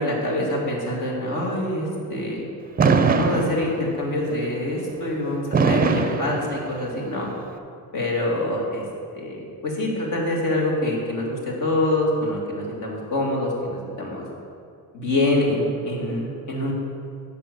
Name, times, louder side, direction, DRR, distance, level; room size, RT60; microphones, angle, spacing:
voice 1, 0.0-2.4 3.2-7.3 7.9-8.9 9.1-14.2 14.9-16.7, left 1 dB, 60° left, -2 dB, 2.1 m, -25 dB
Fireworks, 2.8-4.1 5.5-7.1, right 4 dB, 25° right, 0.5 m, -21 dB
7.6 x 5.2 x 6.8 m, 2.4 s
cardioid pair, 95°, 35 cm